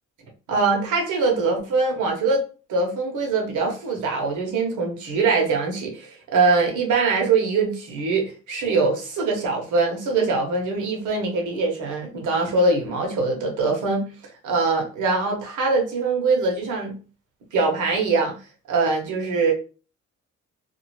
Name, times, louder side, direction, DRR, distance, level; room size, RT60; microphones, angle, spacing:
voice 1, 0.5-2.4 2.7-14.1 14.4-16.9 17.5-18.3 18.7-19.5, right 3 dB, 80° right, 1.1 m, -23 dB
2.6 x 2.4 x 3.1 m
cardioid pair, 90°, 30 cm